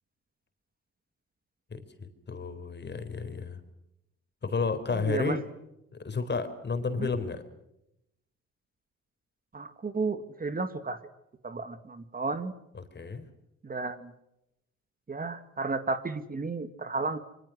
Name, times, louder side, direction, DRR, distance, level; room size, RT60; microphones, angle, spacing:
voice 1, 1.7-3.6 4.4-5.4 5.9-7.4 12.7-13.3, left 4 dB, 35° left, 9 dB, 4.2 m, -32 dB
voice 2, 4.9-5.4 7.0-7.1 9.5-11.0 11.4-12.5 13.6-14.1 15.1-17.2, right 3 dB, 30° right, 10 dB, 2.0 m, -33 dB
26.0 x 24.5 x 6.3 m, 0.84 s
cardioid pair, 90°, 30 cm